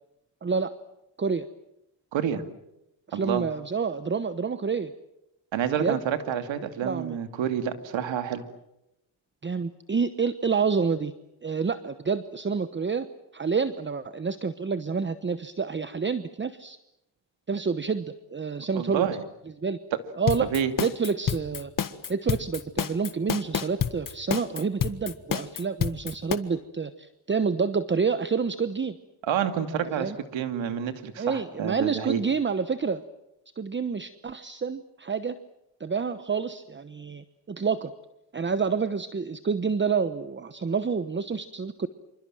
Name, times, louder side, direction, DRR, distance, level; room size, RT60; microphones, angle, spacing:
voice 1, 0.4-0.7 1.2-1.5 3.1-4.9 5.8-6.0 6.8-7.2 9.4-11.1 11.4-13.1 13.3-16.8 17.5-19.1 19.6-19.8 20.2-20.5 20.8-21.7 22.1-29.0 29.8-30.2 31.2-33.0 33.6-35.4 35.8-37.9 38.3-41.9, right 5 dB, 25° right, 12 dB, 1.0 m, -28 dB
voice 2, 2.1-2.4 3.1-3.4 5.5-8.4 18.8-19.2 20.5-20.7 29.2-32.2, right 8 dB, 90° right, 8 dB, 2.6 m, -28 dB
sound 1, 20.3-26.4, left 8 dB, 45° left, 1.7 m, -28 dB
27.0 x 26.0 x 7.7 m, 0.87 s
cardioid pair, 95°, 44 cm